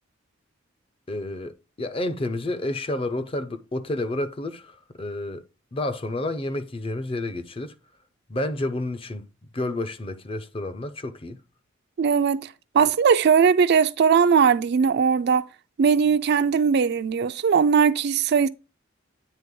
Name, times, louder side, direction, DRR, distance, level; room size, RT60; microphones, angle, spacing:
voice 1, 1.1-5.4 5.7-7.7 8.3-9.3 9.5-11.4 12.8-12.9, left 2 dB, 30° left, 0.5 m, -30 dB
voice 2, 12.0-12.5 12.7-15.4 15.8-18.5, right 6 dB, 55° right, 0.4 m, -19 dB
9.1 x 3.4 x 3.7 m
head